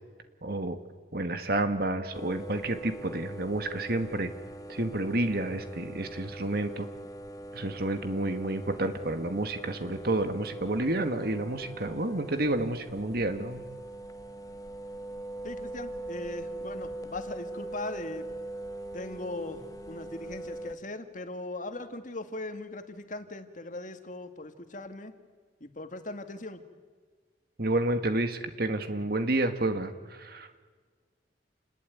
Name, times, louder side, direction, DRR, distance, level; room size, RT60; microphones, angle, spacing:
voice 1, 0.4-0.8 1.1-4.3 4.7-6.9 7.5-13.6 27.6-30.6, right 2 dB, 55° right, 8 dB, 1.8 m, -30 dB
sound 1, 2.1-20.8, right 1 dB, 20° left, 1.1 m, -42 dB
voice 2, 15.4-18.3 18.9-25.1 25.6-26.6, left 2 dB, 45° left, 7 dB, 2.1 m, -39 dB
29.0 x 20.5 x 9.3 m, 1.5 s
head